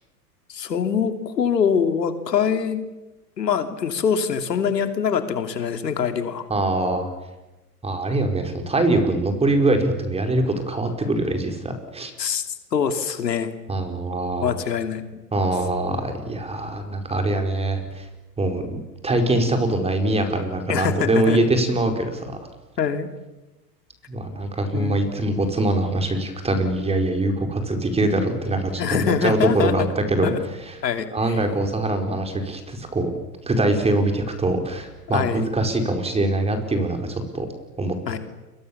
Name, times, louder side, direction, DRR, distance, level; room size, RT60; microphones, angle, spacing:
voice 1, 0.5-2.8 3.4-6.5 12.2-12.4 12.7-13.5 14.4-15.0 20.7-21.4 22.8-23.1 24.7-25.0 28.8-29.9 30.2-30.4 30.8-31.4 35.1-35.4 38.1-38.2, left 7 dB, 85° left, 8 dB, 3.0 m, -24 dB
voice 2, 6.5-7.1 7.8-12.1 13.7-14.5 15.3-18.0 18.4-18.8 19.0-22.3 24.1-30.3 30.7-30.8 31.1-33.1 33.5-37.5 37.8-38.2, right 2 dB, 10° right, 5 dB, 4.8 m, -23 dB
29.5 x 23.5 x 7.2 m, 1.1 s
hypercardioid pair, 115°, 48 cm